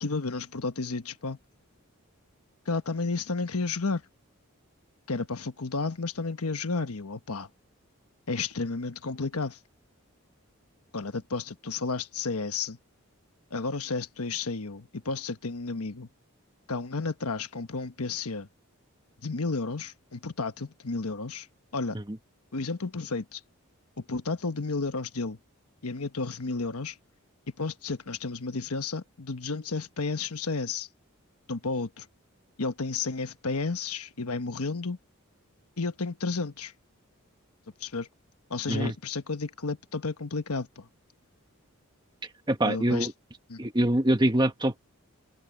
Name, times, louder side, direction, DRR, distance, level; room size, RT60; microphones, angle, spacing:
voice 1, 0.0-1.4 2.7-4.0 5.1-7.5 8.3-9.6 10.9-12.8 13.5-16.1 16.7-18.5 19.2-21.5 21.7-22.0 22.5-23.4 24.0-25.4 25.8-27.0 27.6-30.9 31.5-32.1 32.6-35.0 35.8-36.7 37.8-38.1 38.5-40.9 42.6-43.1 43.5-43.6, left 3 dB, 90° left, 1.2 m, -32 dB
voice 2, 42.5-43.1 43.6-44.8, right 1 dB, 20° right, 1.4 m, -25 dB
open air
head